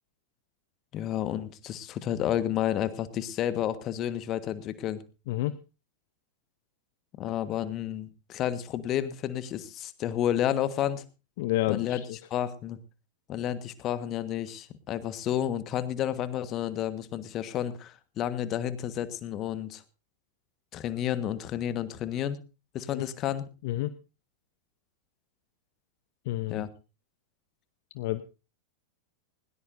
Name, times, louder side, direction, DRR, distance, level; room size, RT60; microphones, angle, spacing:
voice 1, 0.9-5.0 7.1-11.0 11.7-12.0 12.3-12.8 13.3-19.8 20.7-22.4 22.7-23.4 26.5-26.7, left 11 dB, 35° left, 13 dB, 1.5 m, -31 dB
voice 2, 5.3-5.6 11.4-12.1 22.9-23.1 23.6-23.9 26.3-26.6 27.9-28.2, left 16 dB, 50° left, 14 dB, 0.7 m, -29 dB
20.0 x 18.0 x 2.6 m, 0.32 s
figure-of-eight pair, 90°, 0 cm